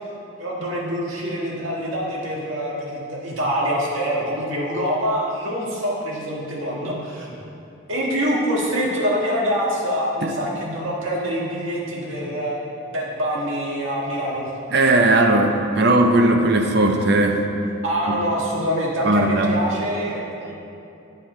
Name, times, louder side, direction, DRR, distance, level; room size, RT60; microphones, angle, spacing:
voice 1, 0.4-7.3 7.9-12.6 12.9-14.5 17.8-20.5, equal, 70° right, -4 dB, 1.7 m, -25 dB
voice 2, 14.7-17.4 18.1-18.2 19.0-19.5, right 2 dB, 50° right, 4 dB, 0.7 m, -18 dB
10.5 x 7.7 x 3.2 m, 2.7 s
head